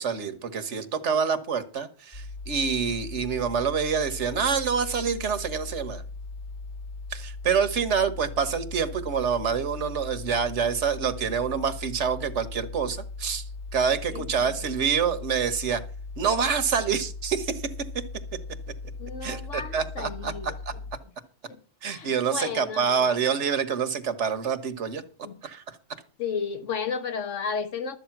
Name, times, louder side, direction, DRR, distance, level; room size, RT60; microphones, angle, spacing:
voice 1, 0.0-6.0 7.1-13.4 13.7-15.8 16.2-17.6 19.2-20.7 21.8-25.0 25.4-25.8, right 6 dB, 75° right, 1.4 m, -27 dB
sound 1, 2.1-21.0, left 3 dB, 35° left, 0.5 m, -39 dB
voice 2, 14.1-14.6 19.0-20.5 21.5-22.9 25.2-25.4 26.2-28.0, left 6 dB, 85° left, 1.6 m, -33 dB
12.5 x 8.2 x 5.9 m
omnidirectional pair, 1.2 m